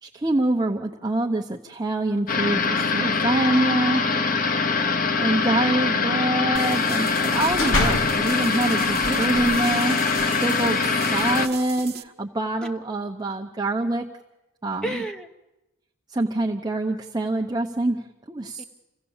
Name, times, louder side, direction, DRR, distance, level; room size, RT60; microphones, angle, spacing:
voice 1, 0.0-4.0 5.2-10.0 10.2-14.0 14.6-15.0 16.1-18.6, right 2 dB, 20° right, 1 dB, 0.8 m, -25 dB
sound 1, 2.3-11.5, left 4 dB, 40° left, 0.8 m, -23 dB
voice 2, 3.9-5.2 14.8-15.3 18.6-18.7, right 1 dB, 5° left, 4 dB, 1.0 m, -35 dB
sound 2, 6.6-12.0, right 8 dB, 50° right, 1.0 m, -38 dB
sound 3, 7.4-8.3 8.8-11.6, left 1 dB, 65° left, 1.9 m, -30 dB
26.5 x 16.0 x 7.2 m, 1.0 s
head